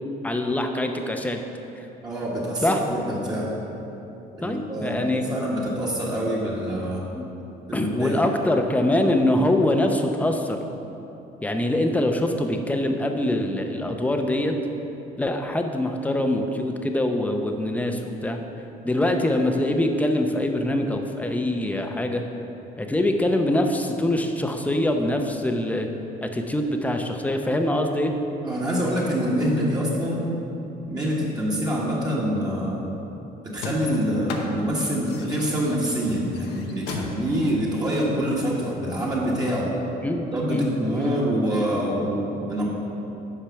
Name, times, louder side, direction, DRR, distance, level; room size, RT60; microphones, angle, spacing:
voice 1, 0.2-1.4 2.6-2.8 4.4-5.2 7.2-7.3 7.7-10.6 11.4-14.6 15.2-18.4 18.8-22.2 22.8-25.9 26.2-28.1 40.0-40.2 40.5-41.1, left 1 dB, 10° left, 4 dB, 0.7 m, -24 dB
voice 2, 2.0-3.6 4.3-7.1 7.7-8.2 28.4-30.2 30.8-32.9 33.4-39.7 40.1-42.7, equal, 25° right, -6 dB, 1.5 m, -26 dB
sound 1, 33.6-38.8, left 3 dB, 85° left, 0.9 m, -36 dB
8.9 x 4.9 x 5.8 m, 2.9 s
cardioid pair, 110°, 17 cm